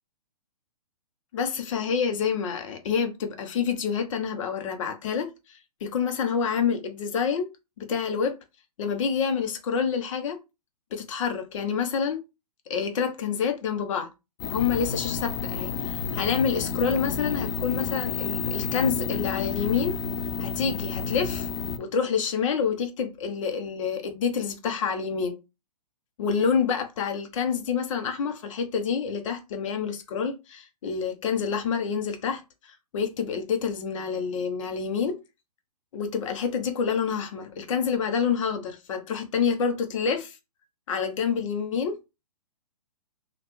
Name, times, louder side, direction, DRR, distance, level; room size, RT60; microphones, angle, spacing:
voice 1, 1.3-7.5 7.8-8.4 8.8-10.4 10.9-12.2 12.7-14.1 14.5-20.0 20.4-21.5 21.8-25.4 26.2-35.2 35.9-40.4 40.9-41.9, left 6 dB, 50° left, 0.8 m, -27 dB
sound 1, 14.4-21.8, left 6 dB, 30° left, 0.4 m, -30 dB
3.2 x 2.4 x 3.1 m
hypercardioid pair, 125°, 20 cm